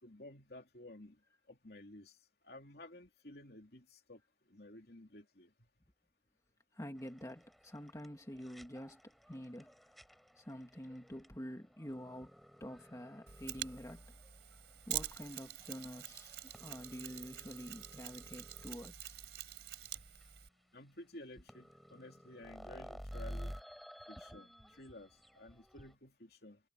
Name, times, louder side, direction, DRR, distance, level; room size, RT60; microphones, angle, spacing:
voice 1, 0.0-1.2 1.5-2.1 2.4-4.2 4.5-5.5 20.7-23.6 24.1-26.6, left 1 dB, 55° left, 3.3 m, -54 dB
voice 2, 6.7-9.7 10.4-12.3 12.6-14.1 14.9-19.2 24.3-24.4, equal, 15° left, 2.1 m, -48 dB
sound 1, 7.0-18.9 19.5-19.6 19.8-19.9 20.2-20.3 21.2-21.3 21.5-25.9, equal, ahead, 5.5 m, -53 dB
Mechanisms, 13.3-20.5, right 12 dB, 70° right, 3.6 m, -46 dB
head